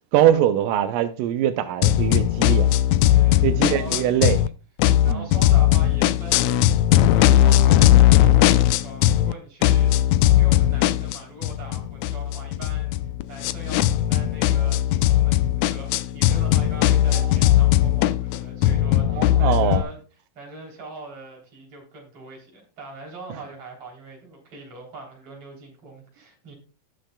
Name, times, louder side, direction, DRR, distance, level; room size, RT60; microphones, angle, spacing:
voice 1, 0.1-2.7 3.4-4.4 5.1-5.3 17.1-17.3 19.2-19.8, right 11 dB, 90° right, 2.3 m, -22 dB
sound 1, 1.8-4.5 4.8-9.3 9.6-19.8, left 13 dB, 85° left, 1.6 m, -18 dB
voice 2, 3.1-4.0 5.0-13.0 13.3-20.0 20.3-26.5, right 2 dB, 45° right, 4.0 m, -41 dB
18.5 x 6.5 x 2.2 m
omnidirectional pair, 3.8 m